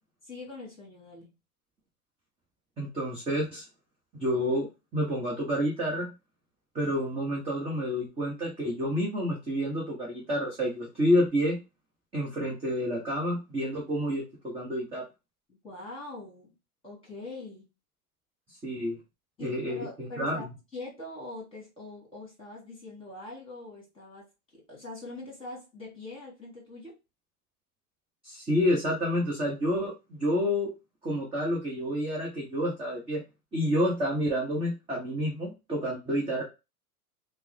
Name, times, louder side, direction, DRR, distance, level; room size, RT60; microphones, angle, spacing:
voice 1, 0.2-1.3 15.5-16.5 16.8-17.7 19.4-20.5 20.7-24.3 24.5-26.9, left 2 dB, 10° left, 1.9 m, -43 dB
voice 2, 2.8-3.6 4.1-4.7 4.9-6.1 6.7-11.6 12.1-15.0 18.6-19.0 19.4-20.4 28.2-30.7 31.0-33.2 33.5-36.4, equal, 10° right, 0.6 m, -29 dB
3.2 x 2.0 x 3.0 m
hypercardioid pair, 125°, 46 cm